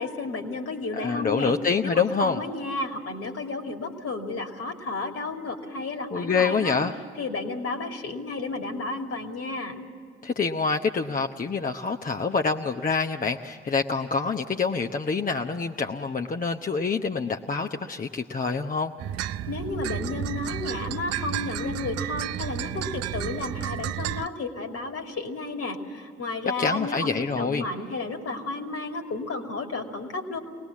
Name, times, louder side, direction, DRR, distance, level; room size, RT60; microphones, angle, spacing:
voice 1, 0.0-1.5 1.8-6.8 7.2-9.8 19.5-27.1 27.4-30.4, left 3 dB, 55° left, 4 dB, 2.7 m, -32 dB
voice 2, 0.9-2.4 6.1-6.9 10.2-18.9 26.6-27.6, left 5 dB, 30° left, 4 dB, 0.9 m, -26 dB
sound 1, 19.0-24.3, right 11 dB, 60° right, 0.6 m, -32 dB
24.0 x 19.5 x 7.3 m, 2.4 s
hypercardioid pair, 45°, 29 cm